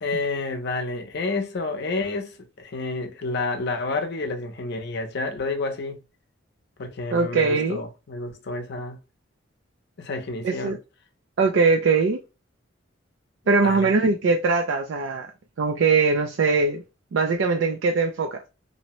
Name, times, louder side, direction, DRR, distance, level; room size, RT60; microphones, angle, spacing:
voice 1, 0.0-6.0 6.8-9.0 10.0-10.8 13.6-13.9, left 3 dB, 60° left, 0.6 m, -29 dB
voice 2, 7.1-7.8 10.4-10.8 11.4-12.2 13.5-15.3 15.6-16.8 17.1-18.4, right 4 dB, 65° right, 0.4 m, -21 dB
2.7 x 2.0 x 2.8 m
head